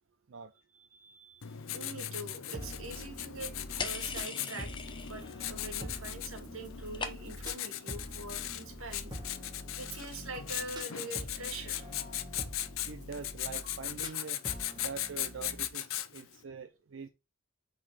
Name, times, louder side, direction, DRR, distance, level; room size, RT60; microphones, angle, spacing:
voice 1, 0.7-3.5 3.8-4.7 5.0-9.1 9.8-11.9, right 2 dB, 85° right, 1.9 m, -44 dB
Writing, 1.4-16.4, left 12 dB, 80° left, 0.6 m, -39 dB
sound 1, 2.5-15.7, equal, 20° right, 1.7 m, -45 dB
sound 2, 3.8-5.4 5.7-6.2 6.5-7.5, left 5 dB, 25° left, 0.8 m, -40 dB
voice 2, 12.8-14.4 14.7-17.1, right 5 dB, 65° right, 0.5 m, -44 dB
6.1 x 4.1 x 4.6 m
head